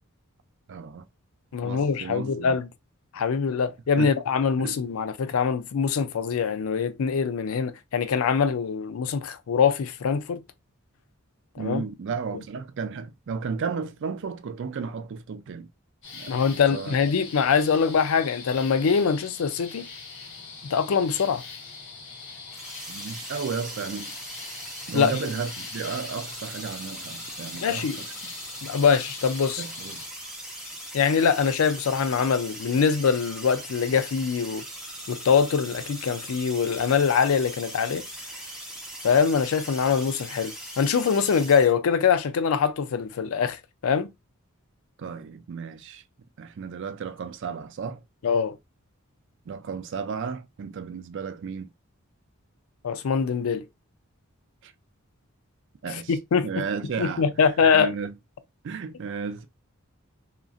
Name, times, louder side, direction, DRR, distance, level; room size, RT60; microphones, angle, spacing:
voice 1, 0.7-1.1 1.6-2.6 4.0-4.2 4.6-4.8 11.6-15.7 16.1-17.0 22.9-24.2 24.9-28.3 29.6-30.0 45.0-46.0 46.4-48.0 49.5-51.7 54.6-54.7 55.8-56.1 56.4-57.3 57.7-58.1 58.6-59.4, right 5 dB, 60° right, 0.4 m, -34 dB
voice 2, 1.5-2.7 3.1-10.4 11.6-11.8 16.3-19.8 20.7-21.4 24.9-25.2 27.6-28.0 28.6-29.6 30.9-34.6 35.1-38.0 39.0-44.1 48.2-48.6 52.8-53.6 55.9-56.5 57.0-57.9, left 6 dB, 75° left, 0.4 m, -23 dB
sound 1, 16.0-30.1, left 4 dB, 60° left, 1.0 m, -42 dB
sound 2, 22.5-41.7, right 1 dB, 5° right, 0.8 m, -40 dB
2.9 x 2.5 x 2.3 m
head